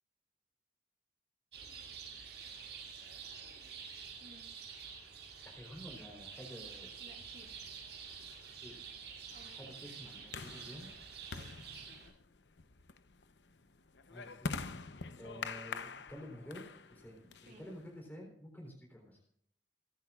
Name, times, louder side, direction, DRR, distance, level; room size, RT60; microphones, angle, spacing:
sound 1, 1.5-12.1, right 6 dB, 75° right, 7.5 m, -49 dB
voice 1, 5.4-6.9 8.5-8.7 9.8-10.9 14.1-14.8 15.2-19.2, equal, 10° left, -1 dB, 3.8 m, -50 dB
voice 2, 7.0-7.7 9.3-9.7 11.3-11.7 17.2-17.8, right 1 dB, 50° right, 1 dB, 2.2 m, -59 dB
sound 2, 7.6-18.0, left 4 dB, 85° left, 0.9 m, -46 dB
29.0 x 10.5 x 2.4 m, 0.64 s
head